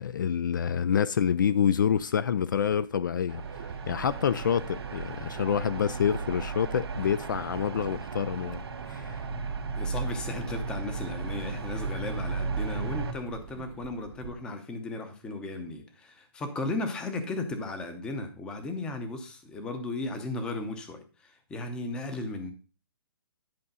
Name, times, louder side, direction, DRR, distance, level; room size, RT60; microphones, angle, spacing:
voice 1, 0.0-9.2, left 8 dB, 55° left, 0.4 m, -27 dB
sound 1, 3.3-13.1, right 4 dB, 80° right, 1.8 m, -35 dB
sound 2, 3.4-14.4, right 7 dB, 30° right, 0.8 m, -47 dB
voice 2, 9.8-22.5, left 2 dB, 5° left, 0.7 m, -35 dB
10.5 x 4.9 x 5.4 m
hypercardioid pair, 175°, 13 cm